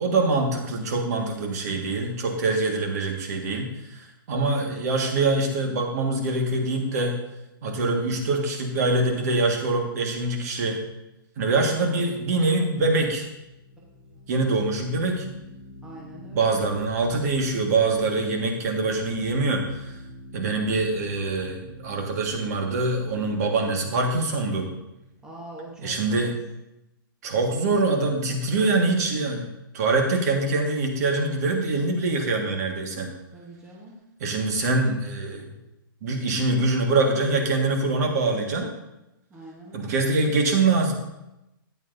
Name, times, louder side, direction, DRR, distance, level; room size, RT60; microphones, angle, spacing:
voice 1, 0.0-7.1 7.6-10.8 11.4-13.2 14.3-15.3 16.3-20.0 20.3-24.7 25.8-26.3 27.2-29.5 29.7-33.1 34.2-35.6 36.0-38.7 39.7-40.9, right 3 dB, 45° right, 2 dB, 1.6 m, -24 dB
sound 1, 13.0-25.8, left 1 dB, 35° left, 3.8 m, -44 dB
voice 2, 15.8-16.6 20.4-21.0 25.2-26.3 33.3-34.0 39.3-40.1, right 1 dB, 5° right, -4 dB, 1.0 m, -44 dB
13.0 x 9.1 x 2.6 m, 0.93 s
hypercardioid pair, 170°, 12 cm